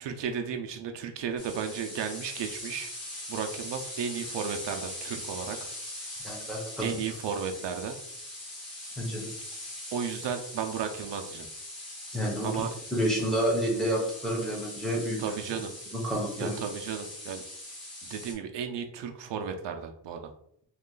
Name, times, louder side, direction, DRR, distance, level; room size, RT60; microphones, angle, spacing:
voice 1, 0.0-2.9 3.3-5.6 6.8-8.0 9.9-11.5 12.4-12.7 15.2-15.7 16.4-17.4 18.1-20.3, right 7 dB, 75° right, 5 dB, 0.5 m, -34 dB
sound 1, 1.4-18.3, left 1 dB, 35° left, 1.2 m, -41 dB
voice 2, 6.2-7.0 9.0-9.3 12.1-12.6 12.9-15.2 15.9-16.6, equal, ahead, -2 dB, 0.7 m, -29 dB
3.0 x 2.4 x 3.7 m, 0.70 s
wide cardioid pair, 170°, 44 cm